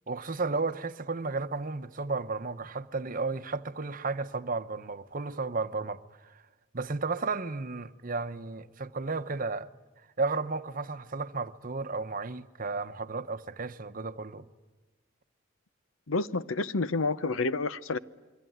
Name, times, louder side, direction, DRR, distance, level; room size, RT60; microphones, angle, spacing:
voice 1, 0.1-6.4 6.7-9.7 10.2-14.5, right 3 dB, 40° right, 0.9 m, -33 dB
voice 2, 16.1-18.0, left 3 dB, 80° left, 0.8 m, -29 dB
27.5 x 23.0 x 9.3 m
head